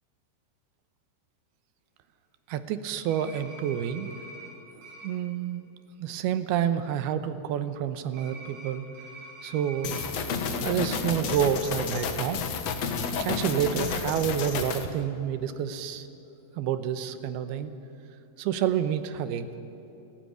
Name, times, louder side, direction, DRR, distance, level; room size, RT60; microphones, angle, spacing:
voice 1, 2.5-4.1 4.7-5.6 6.0-8.8 9.4-10.0 10.6-12.4 13.2-16.1 16.6-17.7 18.4-19.5, right 9 dB, 75° right, 11 dB, 2.6 m, -29 dB
sound 1, 3.1-4.5 4.8-5.1 8.1-10.1, right 2 dB, 55° right, 7.1 m, -45 dB
sound 2, 9.8-14.9, left 5 dB, 65° left, 1.7 m, -31 dB
30.0 x 12.0 x 9.3 m, 3.0 s
omnidirectional pair, 5.0 m